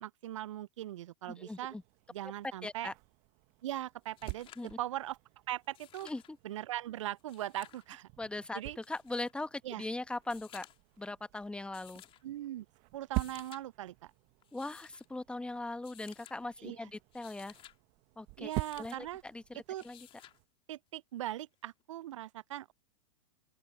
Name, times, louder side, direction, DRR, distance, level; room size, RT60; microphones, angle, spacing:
voice 1, 0.0-1.7 2.1-2.9 3.6-5.2 5.5-6.1 6.4-8.1 8.5-8.8 9.6-9.8 12.2-12.7 12.9-14.1 16.6-16.9 18.4-19.2 19.5-19.8 20.7-22.7, right 13 dB, 65° right, 0.5 m, -40 dB
voice 2, 1.3-1.8 2.6-2.9 4.6-4.8 6.0-6.4 8.2-10.7 11.0-12.0 14.5-17.5 18.2-18.5 18.8-20.1, left 2 dB, 5° left, 1.3 m, -40 dB
sound 1, 1.6-20.5, right 27 dB, 45° right, 1.3 m, -47 dB
sound 2, 3.7-3.8 4.0-4.7 5.6-6.3 7.2-7.9 8.8-9.3 10.2-10.9 11.7-12.2 13.0-13.6 14.4-15.0 15.8-16.4 17.0-17.8 18.5-19.0 19.8-20.4 21.8-21.9, left 12 dB, 30° left, 3.3 m, -56 dB
open air
figure-of-eight pair, 100°, 17 cm